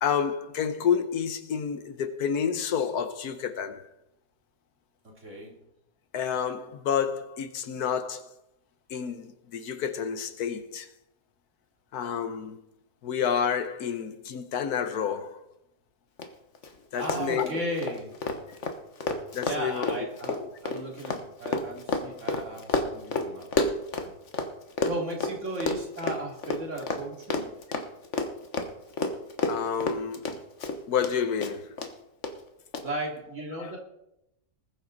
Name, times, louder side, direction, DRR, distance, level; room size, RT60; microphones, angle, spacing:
voice 1, 0.0-3.8 6.1-8.2 8.9-10.9 11.9-12.6 13.0-15.4 16.9-17.5 19.3-19.9 20.3-20.5 29.5-30.2 30.9-31.7 33.6-33.7, left 7 dB, 75° left, 1.4 m, -29 dB
voice 2, 5.2-5.6 16.9-18.1 19.4-23.5 23.9-24.1 24.9-27.5 32.8-33.8, right 1 dB, 50° right, 3.2 m, -35 dB
Run, 16.2-16.3 16.5-16.7 17.0-24.5 24.8-31.1 31.4-31.9 32.2-32.3 32.7-32.8, left 3 dB, 50° left, 1.4 m, -30 dB
20.0 x 8.0 x 4.0 m
omnidirectional pair, 1.7 m